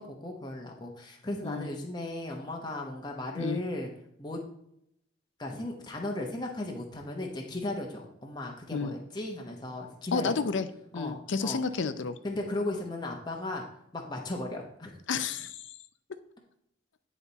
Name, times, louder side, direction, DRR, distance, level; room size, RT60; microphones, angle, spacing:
voice 1, 0.0-3.9 4.2-4.4 5.4-10.3 10.9-11.6 12.2-13.6 13.9-14.9, left 2 dB, 20° left, 0 dB, 0.8 m, -36 dB
voice 2, 10.1-10.7 10.9-12.1 15.1-15.6, left 5 dB, 70° left, 12 dB, 0.5 m, -30 dB
9.3 x 4.1 x 4.0 m, 0.75 s
head